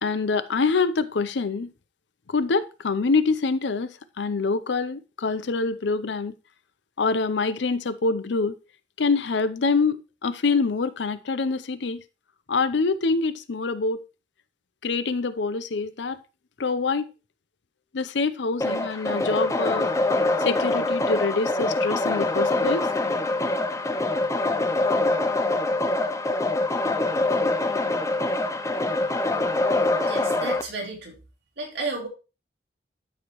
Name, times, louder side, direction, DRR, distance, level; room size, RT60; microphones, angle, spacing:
voice 1, 0.0-1.7 2.3-6.3 7.0-8.5 9.0-12.0 12.5-14.0 14.8-16.2 16.6-17.1 17.9-19.9 20.4-22.9, left 4 dB, 75° left, 0.6 m, -25 dB
sound 1, 18.6-30.6, left 2 dB, 15° left, 0.5 m, -24 dB
voice 2, 30.0-31.2 31.6-32.1, right 3 dB, 65° right, 2.8 m, -32 dB
13.0 x 4.9 x 3.0 m
head